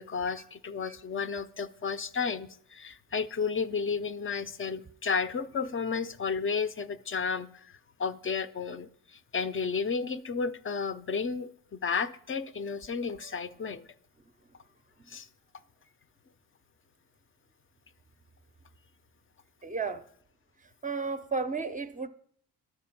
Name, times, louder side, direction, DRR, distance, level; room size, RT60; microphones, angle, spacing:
voice 1, 0.0-13.8 15.1-15.3, left 5 dB, 35° left, 0.5 m, -32 dB
voice 2, 19.6-20.0 20.8-22.1, right 4 dB, 20° right, 0.5 m, -32 dB
12.5 x 4.5 x 5.9 m
cardioid pair, 100°, 39 cm